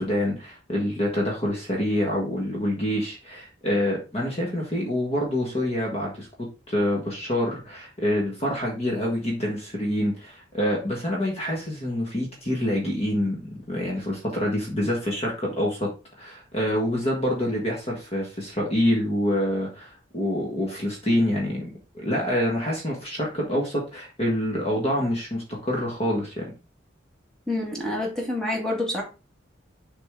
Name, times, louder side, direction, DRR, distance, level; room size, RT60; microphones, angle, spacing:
voice 1, 0.0-6.3 6.7-13.4 13.7-15.9 16.2-26.5, left 1 dB, 35° left, -2 dB, 1.6 m, -26 dB
voice 2, 27.5-29.0, left 1 dB, 5° left, -3 dB, 2.1 m, -27 dB
6.8 x 4.2 x 3.7 m, 0.31 s
head